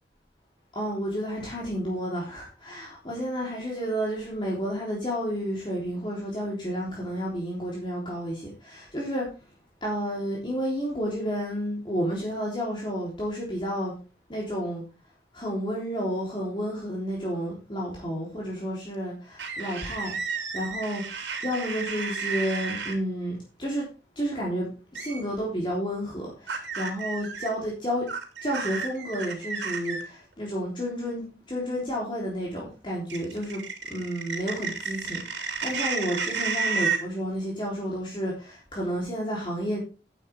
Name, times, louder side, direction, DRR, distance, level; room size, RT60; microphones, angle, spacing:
voice 1, 0.8-9.3 9.8-13.9 14.3-14.8 15.3-20.1 20.5-21.0 21.4-23.8 24.2-24.7 24.9-28.0 28.4-33.6 33.9-39.8, equal, 30° left, -4 dB, 3.5 m, -31 dB
sound 1, 19.4-23.0 25.0-25.2 26.5-27.5 28.1-30.0 33.1-37.0, right 5 dB, 90° right, 3.0 m, -31 dB
10.5 x 9.3 x 3.5 m, 0.32 s
head